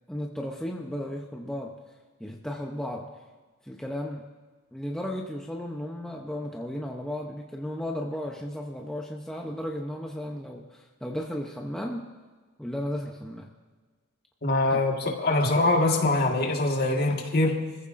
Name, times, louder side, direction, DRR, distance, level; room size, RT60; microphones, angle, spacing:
voice 1, 0.1-1.8 2.2-3.1 3.6-4.3 4.7-12.1 12.6-13.5 14.7-15.1, equal, 5° left, 0 dB, 0.7 m, -34 dB
voice 2, 14.4-17.6, left 2 dB, 45° left, 1 dB, 1.7 m, -23 dB
25.0 x 15.0 x 2.6 m, 1.4 s
head